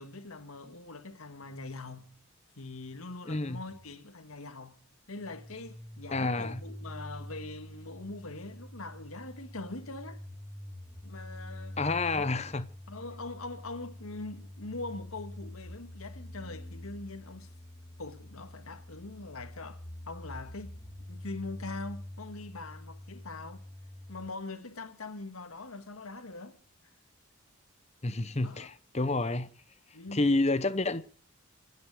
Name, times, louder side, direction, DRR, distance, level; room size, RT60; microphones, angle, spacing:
voice 1, 0.0-2.1 2.6-4.8 5.1-10.2 11.0-11.8 12.1-12.3 12.9-17.5 18.0-20.8 21.1-23.6 24.1-26.6 28.4-28.7 29.9-30.4, left 3 dB, 85° left, 1.7 m, -42 dB
voice 2, 3.3-3.6 6.1-6.6 11.8-12.7 28.0-29.5 30.1-31.0, left 2 dB, 30° left, 0.8 m, -29 dB
sound 1, 5.1-24.3, left 1 dB, 10° left, 2.0 m, -46 dB
27.5 x 9.5 x 4.8 m
head